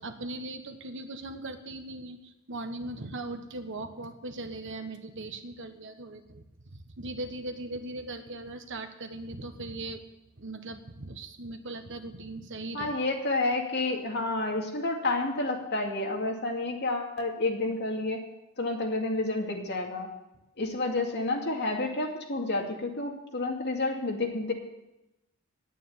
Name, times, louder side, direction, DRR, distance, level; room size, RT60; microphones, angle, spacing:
voice 1, 0.0-10.0 10.4-13.0, right 2 dB, 60° right, 7 dB, 1.3 m, -39 dB
voice 2, 12.7-18.2 18.6-20.1 20.6-24.5, left 2 dB, 55° left, 1 dB, 2.3 m, -30 dB
9.8 x 9.2 x 9.6 m, 0.94 s
head